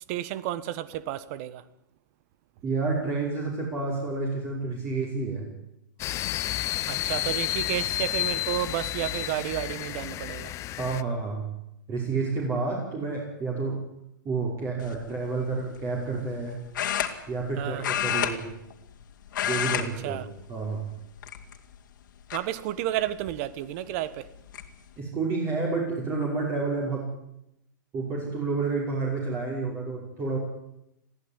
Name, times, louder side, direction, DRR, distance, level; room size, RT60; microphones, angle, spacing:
voice 1, 0.1-1.6 6.9-10.5 17.6-17.8 20.0-20.2 22.3-24.2, right 13 dB, 45° right, 1.4 m, -31 dB
voice 2, 2.6-5.5 10.8-11.5 11.9-13.8 14.2-16.6 17.3-18.5 19.4-20.2 20.5-20.8 25.0-27.0 27.9-30.4, right 3 dB, 25° right, 5.5 m, -29 dB
sound 1, 6.0-11.0, left 15 dB, 30° left, 0.8 m, -31 dB
sound 2, 14.8-15.1 16.7-17.5 17.8-19.0 19.3-19.9 20.2-20.4 21.2-21.7 22.3-22.4 23.9-24.0 24.3-24.7, left 10 dB, 70° left, 2.8 m, -29 dB
22.0 x 15.0 x 9.9 m
hypercardioid pair, 135°, 11 cm